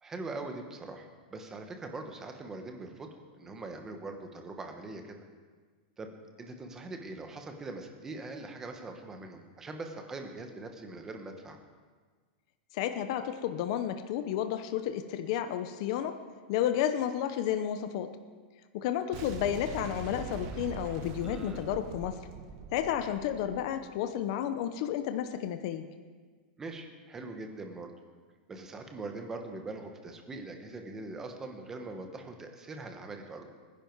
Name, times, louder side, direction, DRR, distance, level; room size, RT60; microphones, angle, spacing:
voice 1, 0.0-5.2 6.0-11.6 21.2-21.6 26.6-27.9 28.5-33.5, right 2 dB, 10° right, 4 dB, 1.1 m, -42 dB
voice 2, 12.7-16.2 16.5-18.2 18.7-22.3 22.7-25.9, left 10 dB, 35° left, 9 dB, 0.7 m, -32 dB
Boom, 19.1-24.0, right 5 dB, 35° right, 1.2 m, -43 dB
24.0 x 10.5 x 4.6 m, 1.5 s
supercardioid pair, 180°, 5 cm